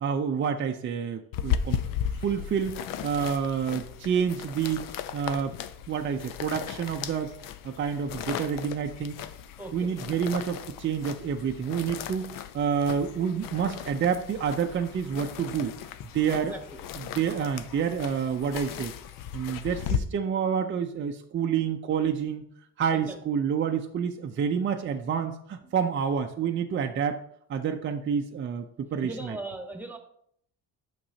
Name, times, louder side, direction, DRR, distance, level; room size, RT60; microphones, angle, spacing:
voice 1, 0.0-1.8 2.2-5.5 5.9-7.3 7.6-9.2 9.7-15.8 16.1-16.5 17.1-18.9 19.3-22.4 22.8-27.2 27.5-29.4, right 7 dB, 35° right, 4 dB, 0.5 m, -28 dB
sound 1, 1.3-20.0, left 9 dB, 65° left, 0.6 m, -36 dB
voice 2, 9.6-9.9 16.3-16.8 17.3-17.5 22.9-23.2 25.6-25.7 28.9-30.0, right 2 dB, 5° right, 4 dB, 1.2 m, -39 dB
8.6 x 6.0 x 2.7 m, 0.67 s
cardioid pair, 115°, 35 cm